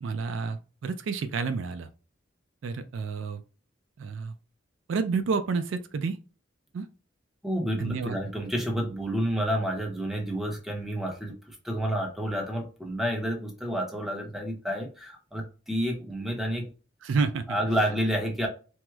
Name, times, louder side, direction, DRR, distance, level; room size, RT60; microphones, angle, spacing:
voice 1, 0.0-1.9 2.6-3.4 4.0-4.3 4.9-6.2 6.7-6.9 7.8-8.2 17.0-17.5, right 4 dB, 70° right, 0.3 m, -29 dB
voice 2, 7.4-16.7 17.5-18.5, equal, ahead, 0.7 m, -29 dB
4.5 x 2.0 x 2.3 m
head